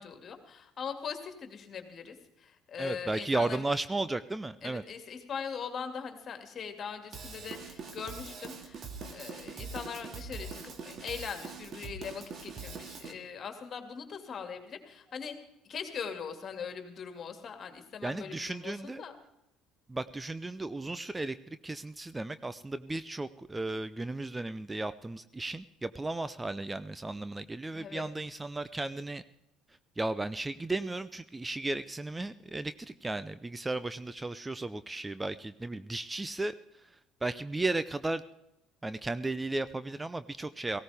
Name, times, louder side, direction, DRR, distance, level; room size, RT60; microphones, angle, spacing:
voice 1, 0.0-3.6 4.6-8.8 9.1-15.3 15.6-19.2 27.7-28.1, left 6 dB, 40° left, 6 dB, 2.3 m, -41 dB
voice 2, 2.8-4.8 18.0-19.0 19.9-29.2 30.0-36.5 36.8-38.2 38.8-40.8, right 2 dB, 15° right, 14 dB, 0.6 m, -35 dB
Drum kit / Drum, 7.1-13.1, right 4 dB, 45° right, 2.2 m, -43 dB
18.0 x 16.5 x 3.5 m, 0.88 s
hypercardioid pair, 60°, 0 cm